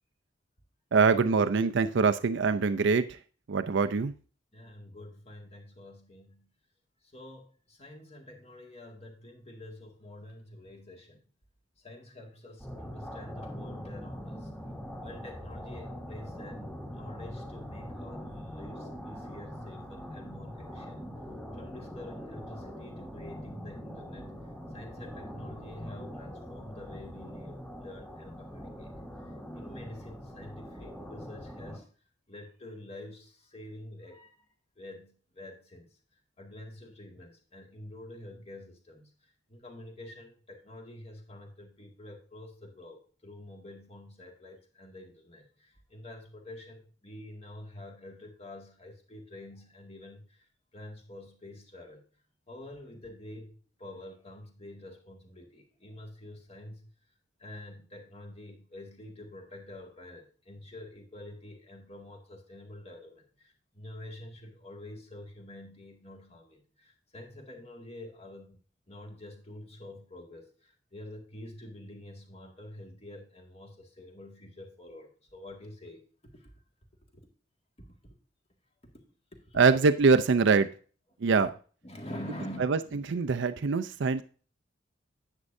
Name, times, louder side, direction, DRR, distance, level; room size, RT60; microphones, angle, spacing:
voice 1, 0.9-3.2 3.5-4.1 79.5-80.7 81.2-81.5 82.6-84.2, right 4 dB, 65° right, 9 dB, 0.5 m, -24 dB
voice 2, 4.5-6.5 7.0-11.2 11.8-14.5 15.0-21.0 21.5-29.0 29.5-31.9 32.3-34.5 34.8-35.9 36.4-50.5 50.7-52.0 52.5-56.9 57.4-68.6 68.9-76.5 77.1-77.2 77.8-78.1 78.8-79.0 79.3-79.6 81.8-83.1, left 1 dB, 35° left, 1 dB, 2.0 m, -47 dB
sound 1, 12.6-31.8, equal, 10° left, 2.5 m, -42 dB
9.7 x 8.3 x 2.6 m, 0.39 s
head